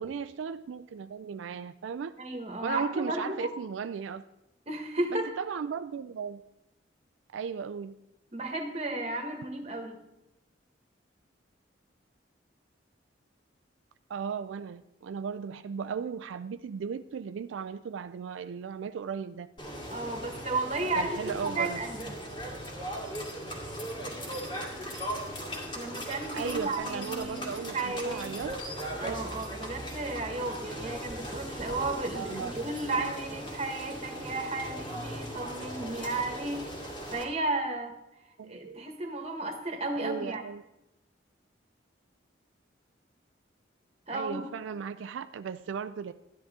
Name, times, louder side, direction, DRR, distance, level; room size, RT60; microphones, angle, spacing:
voice 1, 0.0-2.2 2.6-4.2 5.1-6.4 7.3-8.0 14.1-19.5 21.0-21.8 26.3-28.5 29.1-29.2 32.1-32.5 38.4-38.8 39.9-40.6 44.1-46.1, right 6 dB, 90° right, 11 dB, 0.4 m, -36 dB
voice 2, 2.2-3.5 4.7-5.3 8.3-10.0 19.9-22.2 25.7-28.5 29.0-37.9 38.4-40.4 44.1-44.4, right 2 dB, 35° right, 5 dB, 1.4 m, -34 dB
sound 1, 19.6-37.2, equal, 25° left, 2.0 m, -38 dB
12.0 x 10.5 x 3.6 m, 0.91 s
head